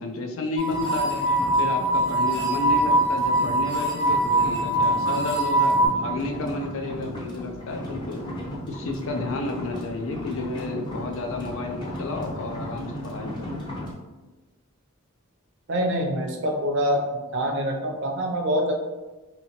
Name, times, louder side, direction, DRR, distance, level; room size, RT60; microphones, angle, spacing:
voice 1, 0.0-8.2 8.7-13.5, left 2 dB, 75° left, 4 dB, 0.4 m, -31 dB
sound 1, 0.6-5.9, right 1 dB, 45° left, 1.2 m, -22 dB
sound 2, 0.7-13.9, left 1 dB, 20° left, 0.6 m, -36 dB
voice 2, 15.7-17.0 17.3-18.7, equal, 60° right, 2 dB, 0.5 m, -25 dB
2.9 x 2.8 x 2.8 m, 1.2 s
head